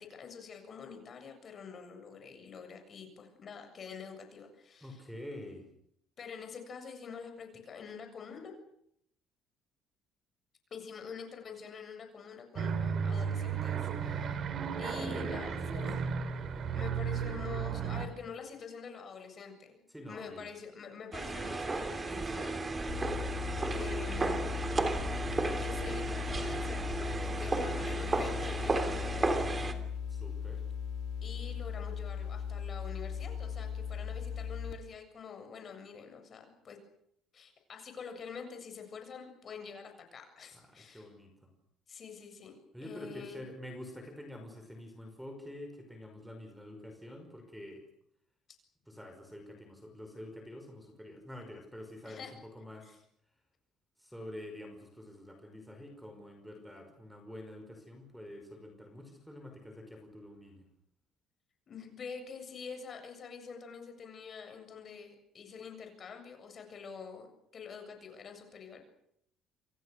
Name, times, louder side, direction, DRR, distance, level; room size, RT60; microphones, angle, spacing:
voice 1, 0.0-5.0 6.2-8.6 10.7-14.5 14.8-16.1 16.7-23.1 23.7-24.7 25.4-29.3 31.2-36.8 37.3-41.1 41.9-43.4 48.5-48.6 52.0-52.3 52.8-53.0 61.7-67.3 67.5-68.8, left 6 dB, 35° left, 5 dB, 7.4 m, -46 dB
voice 2, 4.8-5.7 15.1-16.1 19.9-20.5 30.1-30.6 40.5-41.5 42.7-47.8 48.9-53.0 54.0-60.7, left 1 dB, ahead, 6 dB, 5.5 m, -47 dB
sound 1, 12.6-18.1, right 6 dB, 45° right, 3.3 m, -34 dB
sound 2, 21.1-29.7, right 3 dB, 20° right, 3.1 m, -33 dB
sound 3, 22.9-34.7, left 7 dB, 70° left, 3.8 m, -38 dB
28.5 x 28.0 x 6.7 m, 0.73 s
cardioid pair, 145°, 0 cm